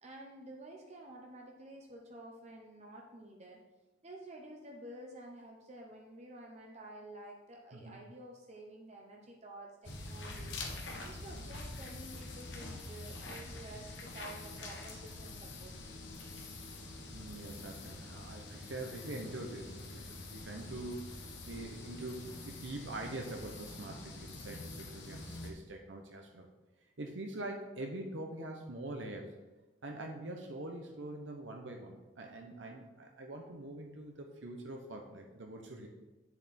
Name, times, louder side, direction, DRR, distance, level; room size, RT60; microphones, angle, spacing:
voice 1, 0.0-3.6 4.0-10.5 11.0-15.7, right 1 dB, 35° right, 0 dB, 0.9 m, -51 dB
sound 1, 9.8-25.5, left 2 dB, 65° left, 1.4 m, -46 dB
voice 2, 17.1-26.5 27.0-29.3 29.8-35.9, right 2 dB, 70° right, 2 dB, 0.9 m, -44 dB
8.4 x 6.9 x 4.3 m, 1.1 s
head